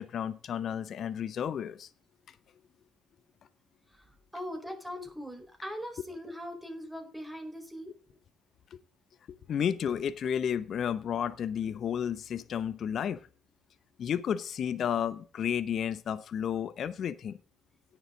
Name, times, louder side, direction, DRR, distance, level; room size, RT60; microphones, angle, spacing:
voice 1, 0.0-1.9 2.3-2.4 9.5-13.2 14.0-17.4, left 8 dB, 55° left, 15 dB, 0.8 m, -32 dB
voice 2, 3.9-7.9, equal, ahead, 4 dB, 4.7 m, -41 dB
17.0 x 6.9 x 3.9 m, 0.37 s
hypercardioid pair, 45°, 0 cm